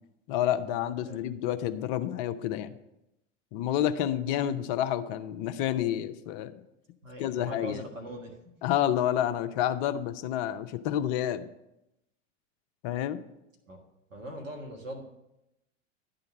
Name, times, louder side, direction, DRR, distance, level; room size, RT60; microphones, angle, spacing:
voice 1, 0.3-2.8 3.5-6.6 7.2-7.8 8.6-11.5 12.8-13.2, left 11 dB, 45° left, 10 dB, 0.7 m, -29 dB
voice 2, 7.0-8.4 13.7-13.8 14.1-15.0, right 1 dB, 90° right, 1 dB, 1.6 m, -41 dB
10.5 x 3.9 x 7.2 m, 0.90 s
hypercardioid pair, 95°, 38 cm